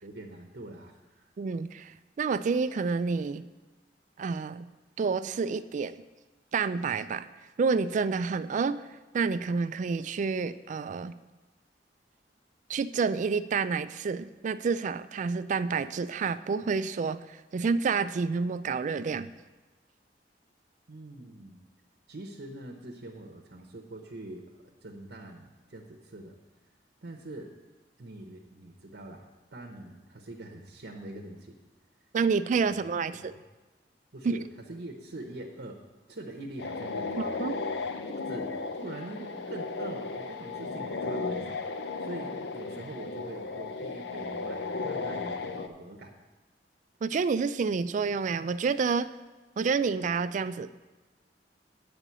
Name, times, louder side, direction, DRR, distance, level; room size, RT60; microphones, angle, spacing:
voice 1, 0.0-1.3 20.9-21.6 22.1-24.4 24.8-26.4 27.0-27.5 28.0-29.3 29.5-31.6 32.6-33.2 34.1-35.8 36.1-37.3 38.1-46.1, right 1 dB, 65° right, 1 dB, 0.8 m, -43 dB
voice 2, 1.4-3.4 4.2-4.7 5.0-6.0 6.5-7.3 7.6-8.8 9.1-11.2 12.7-19.3 32.1-33.3 37.2-37.6 47.0-49.1 49.6-50.7, right 5 dB, 45° right, 13 dB, 0.3 m, -29 dB
sound 1, 36.6-45.7, left 3 dB, 70° left, 0.5 m, -35 dB
8.2 x 5.0 x 7.3 m, 1.2 s
head